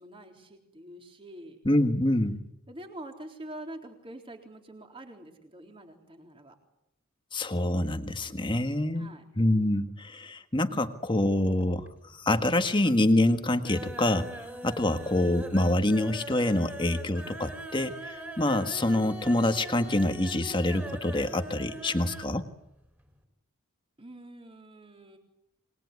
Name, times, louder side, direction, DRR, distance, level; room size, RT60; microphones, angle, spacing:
voice 1, 0.0-1.6 2.7-6.6 8.9-9.2 14.8-15.0 24.0-25.2, right 1 dB, 25° right, 4 dB, 3.9 m, -45 dB
voice 2, 1.7-2.4 7.3-11.9 12.1-22.5, left 1 dB, 20° left, 8 dB, 1.6 m, -26 dB
sound 1, 11.6-12.2 12.5-13.0 13.3-22.4 22.7-22.8 23.1-23.2, right 1 dB, 10° right, 4.6 m, -42 dB
27.5 x 21.5 x 9.7 m, 0.86 s
head